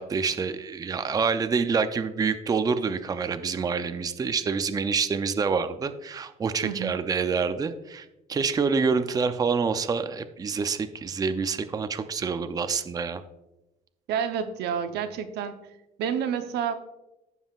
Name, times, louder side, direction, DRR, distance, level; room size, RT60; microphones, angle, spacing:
voice 1, 0.0-13.2, right 5 dB, 20° right, 9 dB, 0.5 m, -27 dB
voice 2, 6.6-6.9 14.1-15.6 16.0-16.8, right 8 dB, 80° right, 8 dB, 0.7 m, -29 dB
15.0 x 5.5 x 2.4 m, 0.94 s
cardioid pair, 110°, 17 cm